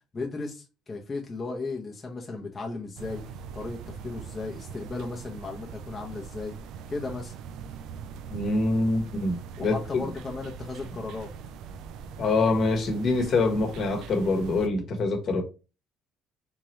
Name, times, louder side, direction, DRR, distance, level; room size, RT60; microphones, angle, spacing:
voice 1, 0.1-6.6 6.9-7.3 9.6-11.3, left 3 dB, 25° left, 0.8 m, -35 dB
sound 1, 3.0-14.7, right 6 dB, 70° right, 0.3 m, -42 dB
voice 2, 8.3-10.0 12.2-15.4, left 3 dB, 50° left, 1.1 m, -25 dB
3.7 x 3.0 x 3.1 m
cardioid pair, 100°, 0 cm